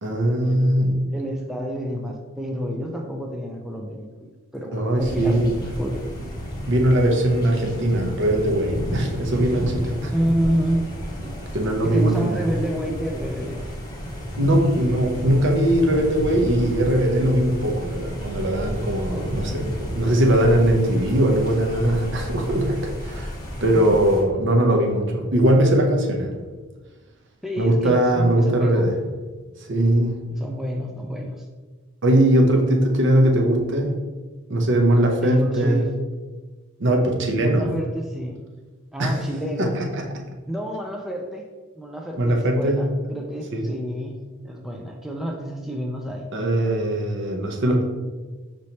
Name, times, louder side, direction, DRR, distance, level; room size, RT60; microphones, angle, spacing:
voice 1, 0.0-1.1 4.7-5.5 6.7-10.1 11.5-12.4 14.4-23.3 23.6-26.3 27.6-28.9 29.6-30.1 32.0-34.0 34.5-35.8 36.8-37.7 39.0-39.2 39.6-40.1 42.2-42.9 43.5-43.7 46.3-47.8, right 1 dB, 60° right, 2 dB, 0.7 m, -20 dB
voice 2, 1.1-5.4 5.8-6.1 10.1-10.8 11.2-11.3 11.8-13.6 19.1-19.6 27.4-28.9 30.3-31.5 33.7-33.8 35.2-36.0 37.4-38.4 38.9-39.7 40.5-41.4 41.8-44.2 44.4-46.3, equal, ahead, 0 dB, 0.3 m, -29 dB
sound 1, 5.0-24.2, equal, 20° left, 0.8 m, -32 dB
5.2 x 3.2 x 2.8 m, 1.3 s
head